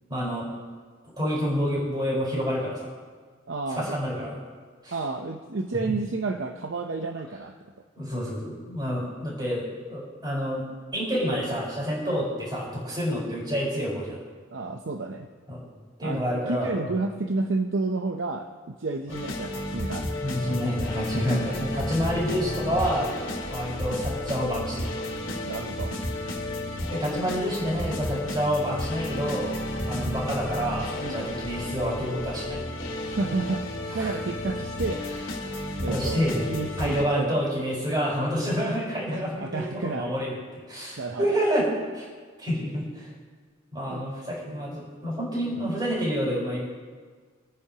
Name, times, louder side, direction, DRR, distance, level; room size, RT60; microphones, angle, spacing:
voice 1, 0.1-0.5 1.0-3.0 3.8-4.4 4.8-4.9 7.9-10.6 10.9-14.2 15.5-15.6 16.0-16.9 20.2-23.1 23.5-25.0 26.9-29.6 29.8-32.6 34.0-34.1 35.9-36.5 36.8-41.7 41.9-42.1 42.4-43.1 43.7-46.6, equal, 20° right, -5 dB, 4.6 m, -28 dB
voice 2, 3.5-4.0 4.9-7.5 14.5-15.3 16.0-20.4 25.4-25.9 30.0-30.1 31.0-31.3 33.0-33.7 33.9-35.1 35.8-37.4 39.1-40.1 41.0-41.4 43.9-44.1 44.5-44.6, right 3 dB, 65° right, 4 dB, 0.7 m, -31 dB
sound 1, 19.1-37.0, left 1 dB, 80° left, 2.2 m, -32 dB
25.0 x 9.4 x 2.9 m, 1.5 s
head